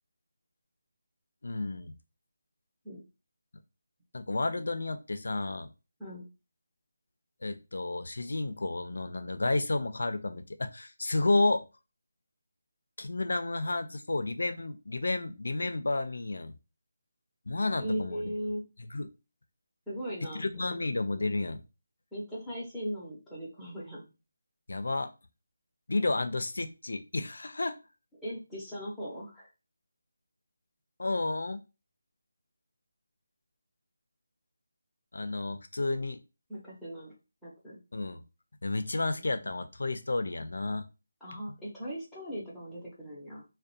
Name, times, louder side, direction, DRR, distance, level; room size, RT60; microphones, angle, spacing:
voice 1, 1.4-1.9 4.1-5.7 7.4-11.6 13.0-16.5 17.5-18.3 18.8-19.1 20.3-21.6 24.7-25.1 25.9-27.8 31.0-31.6 35.1-36.2 37.9-38.2 38.6-40.9, left 2 dB, 75° left, 9 dB, 0.4 m, -31 dB
voice 2, 17.8-18.6 19.9-20.8 22.1-24.1 28.2-29.5 36.5-37.1 37.4-37.8 39.2-39.5 41.2-43.4, equal, ahead, -11 dB, 0.7 m, -38 dB
2.4 x 2.1 x 2.6 m, 0.29 s
figure-of-eight pair, 170°, 0 cm